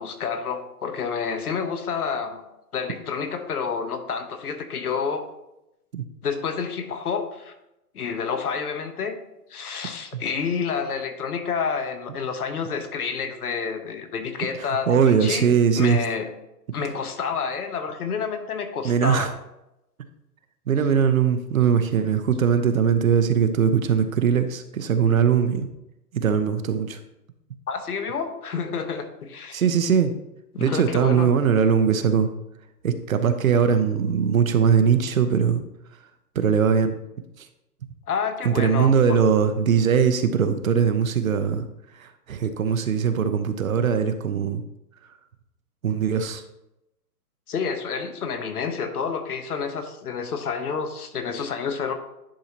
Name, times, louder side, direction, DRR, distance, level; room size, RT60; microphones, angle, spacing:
voice 1, 0.0-2.4 2.7-5.3 6.2-7.5 7.9-9.2 9.5-15.5 15.7-16.3 16.7-19.3 27.7-29.6 30.5-31.3 38.1-39.2 47.5-51.9, left 6 dB, 65° left, 8 dB, 1.1 m, -29 dB
voice 2, 14.7-16.0 18.8-19.3 20.7-25.7 26.1-27.0 29.5-30.1 30.6-32.3 32.8-35.6 36.3-37.0 37.4-37.5 38.4-41.6 42.0-44.6 45.8-46.4, right 7 dB, 55° right, 9 dB, 0.7 m, -21 dB
10.5 x 4.8 x 2.9 m, 0.89 s
hypercardioid pair, 165°, 49 cm